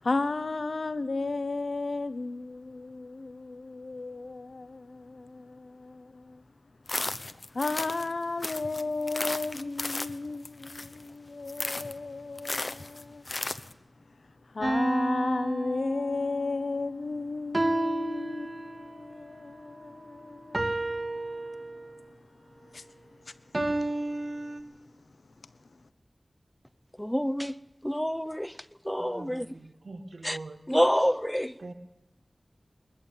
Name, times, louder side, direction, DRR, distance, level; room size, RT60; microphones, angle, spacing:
voice 1, 0.0-6.4 7.5-13.3 14.5-20.6 22.7-22.9 23.8-23.9, left 3 dB, 80° left, 1.0 m, -34 dB
sound 1, 6.9-8.1 8.4-11.1 11.5-12.0 12.4-13.7, left 2 dB, 55° left, 0.9 m, -35 dB
sound 2, 14.6-16.4 17.5-19.0 20.5-22.1 23.5-24.6, right 1 dB, 50° right, 1.9 m, -31 dB
voice 2, 27.0-27.6 27.8-28.6 28.8-29.4 30.2-30.4 30.7-31.6, equal, 5° left, 0.7 m, -27 dB
voice 3, 28.9-29.3 29.8-30.6 31.6-31.7, right 2 dB, 80° right, 1.5 m, -42 dB
20.5 x 14.0 x 9.0 m
wide cardioid pair, 50°, 0 cm